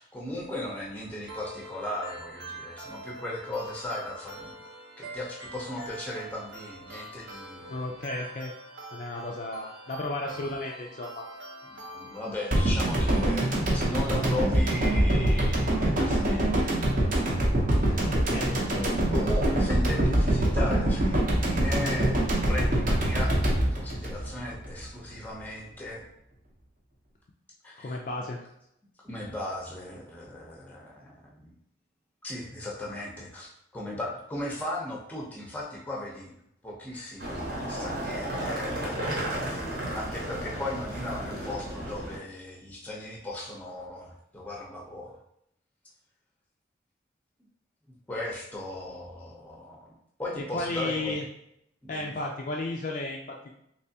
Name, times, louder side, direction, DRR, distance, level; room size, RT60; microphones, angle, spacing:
voice 1, 0.0-4.6 5.0-7.8 11.7-16.8 17.2-17.4 19.1-22.2 22.5-26.0 27.6-28.0 29.0-31.5 32.2-36.3 36.6-37.4 37.7-39.0 39.5-39.6 39.9-45.2 48.1-49.8 50.2-51.2 51.9-52.2, left 1 dB, 10° left, -3 dB, 0.6 m, -37 dB
sound 1, 1.3-13.3, right 1 dB, 90° right, 0.8 m, -44 dB
voice 2, 7.7-8.5 8.9-11.3 17.9-18.9 27.8-28.4 50.4-51.3 51.9-53.5, left 2 dB, 45° left, 0 dB, 0.3 m, -34 dB
sound 2, 12.5-24.8 25.1-25.2, right 1 dB, 45° right, 0.7 m, -24 dB
sound 3, 37.2-42.2, right 1 dB, 65° right, 1.0 m, -33 dB
3.3 x 3.0 x 2.7 m, 0.75 s
head